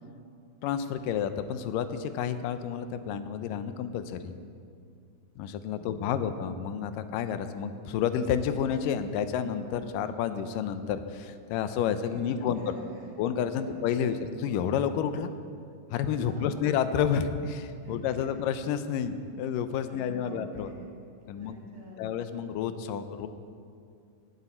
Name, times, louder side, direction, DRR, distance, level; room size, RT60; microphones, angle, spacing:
voice 1, 0.6-4.4 5.4-12.6 13.2-15.3 15.9-20.7 21.3-21.6 22.0-23.3, left 8 dB, 85° left, 10 dB, 2.3 m, -30 dB
voice 2, 5.7-6.3 12.0-13.1 13.5-14.1 16.2-16.6 17.8-18.3 19.8-22.1, right 1 dB, 65° right, -5 dB, 4.3 m, -47 dB
17.0 x 12.5 x 4.4 m, 2.3 s
omnidirectional pair, 3.8 m